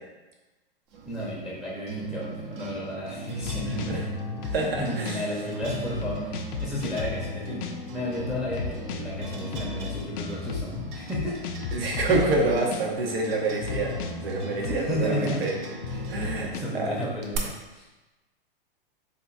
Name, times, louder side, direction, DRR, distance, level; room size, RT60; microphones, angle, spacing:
sound 1, 0.9-17.4, right 5 dB, 40° right, 0.6 m, -40 dB
voice 1, 1.1-4.1 4.5-11.5 14.6-15.5 15.9-18.0, equal, ahead, -4 dB, 0.7 m, -33 dB
sound 2, 3.1-16.6, left 5 dB, 55° left, 0.4 m, -35 dB
voice 2, 4.5-5.2 11.7-15.5 16.1-16.5 16.7-16.9, right 3 dB, 85° right, 0 dB, 0.7 m, -27 dB
4.3 x 2.5 x 2.5 m, 1.1 s
hypercardioid pair, 110°, 29 cm